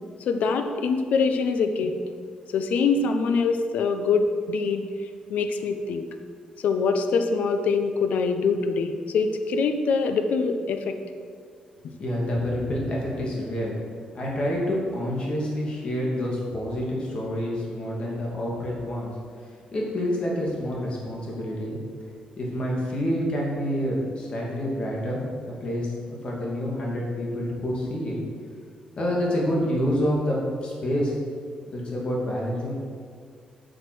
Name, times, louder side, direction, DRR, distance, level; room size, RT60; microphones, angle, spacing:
voice 1, 0.3-1.9 2.5-4.8 5.3-6.1 6.6-10.9, left 4 dB, 75° left, 7 dB, 0.9 m, -24 dB
voice 2, 12.0-13.7 14.1-19.1 19.7-21.8 22.4-25.2 25.5-28.2 29.0-31.1 31.7-32.7, equal, 40° left, -3 dB, 2.6 m, -27 dB
9.3 x 6.5 x 6.3 m, 2.1 s
cardioid pair, 145°, 3 cm